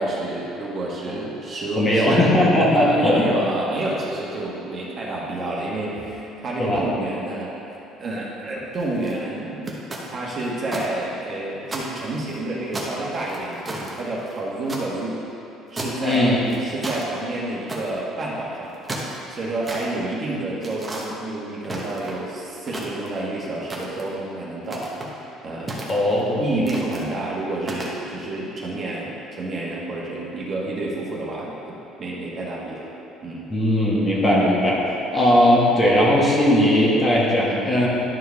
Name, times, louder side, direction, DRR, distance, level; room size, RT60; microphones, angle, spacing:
voice 1, 0.0-2.2 2.7-7.5 8.0-9.7 10.0-15.2 15.7-18.7 19.3-24.9 25.4-32.9 33.2-33.5, right 2 dB, 35° right, -5 dB, 1.4 m, -29 dB
voice 2, 1.8-3.2 6.6-6.9 16.0-16.5 25.9-26.5 33.5-34.8 35.1-37.9, left 1 dB, 20° left, -5 dB, 1.5 m, -18 dB
sound 1, 8.7-9.1 9.7-10.9 11.2-11.3 11.7-12.4 12.7-14.8 15.7-16.1 16.5-17.1 17.7-18.0 18.6-19.8 20.6-21.1 21.6-22.3 22.6-23.2 23.7-24.1 24.6-25.1 25.7-26.2 26.7-27.0 27.6-28.0, right 1 dB, 20° right, 1.1 m, -33 dB
11.0 x 4.7 x 3.5 m, 2.9 s
cardioid pair, 130°, 0 cm